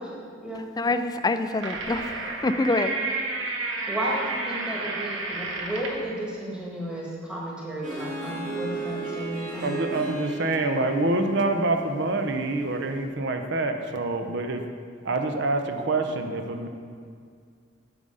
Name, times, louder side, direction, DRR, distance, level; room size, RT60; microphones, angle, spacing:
voice 1, 0.0-0.7 3.9-9.8, right 1 dB, 5° right, -5 dB, 1.4 m, -33 dB
voice 2, 0.8-3.0, left 2 dB, 20° left, 9 dB, 0.4 m, -26 dB
sound 1, 1.2-6.1, right 3 dB, 85° right, 1.1 m, -31 dB
Harp, 7.8-13.0, right 2 dB, 45° right, 1.8 m, -36 dB
voice 3, 9.6-14.7 15.0-16.7, right 2 dB, 60° right, 6 dB, 0.7 m, -26 dB
8.9 x 6.4 x 5.5 m, 2.2 s
head